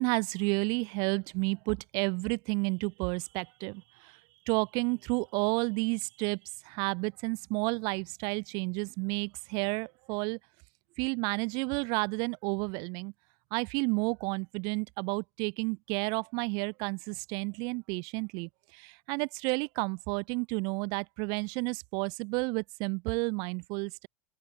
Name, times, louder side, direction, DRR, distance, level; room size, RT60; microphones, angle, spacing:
voice 1, 0.0-4.2 4.5-10.4 11.0-13.1 13.5-24.1, right 32 dB, 55° right, 5.1 m, -31 dB
open air
hypercardioid pair, 95°, 8 cm